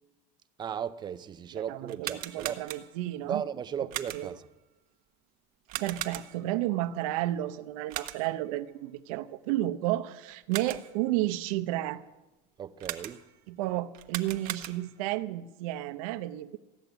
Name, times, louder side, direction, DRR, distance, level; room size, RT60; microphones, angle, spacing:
voice 1, 0.6-2.6 3.3-4.4 12.6-13.2, right 8 dB, 25° right, 0.6 m, -36 dB
voice 2, 1.5-3.4 3.8-4.4 5.7-12.0 13.5-16.6, right 15 dB, 85° right, 0.8 m, -32 dB
sound 1, 1.8-3.1 3.9-4.5 5.7-6.6 7.9-8.5 10.3-11.0 12.8-13.4 13.9-15.1, right 13 dB, 55° right, 1.1 m, -39 dB
15.5 x 10.5 x 8.1 m
cardioid pair, 145°, 18 cm